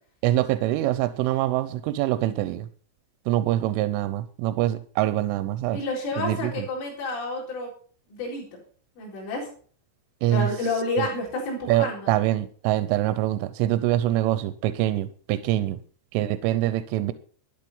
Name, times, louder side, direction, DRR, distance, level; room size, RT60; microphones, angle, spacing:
voice 1, 0.2-2.7 3.3-5.8 6.2-6.7 10.2-10.5 11.0-11.1 11.7-15.8 16.1-17.1, right 14 dB, 90° right, 13 dB, 3.3 m, -24 dB
voice 2, 5.7-7.7 8.1-8.6 9.0-9.5 10.3-12.1 15.5-15.6, left 2 dB, 80° left, -2 dB, 6.8 m, -30 dB
12.5 x 10.5 x 5.5 m, 0.43 s
omnidirectional pair, 5.6 m